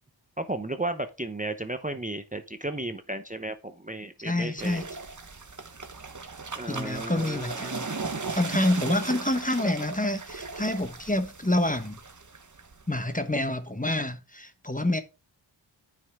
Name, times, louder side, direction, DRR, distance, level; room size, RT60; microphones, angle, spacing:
voice 1, 0.4-4.8 6.5-7.9, right 2 dB, 15° right, 0.8 m, -34 dB
voice 2, 4.2-4.9 6.7-7.8 8.3-12.0 12.9-15.0, left 1 dB, 15° left, 1.1 m, -27 dB
sound 1, 4.6-13.5, right 4 dB, 35° right, 1.2 m, -37 dB
9.7 x 5.6 x 3.6 m
wide cardioid pair, 45°, 50 cm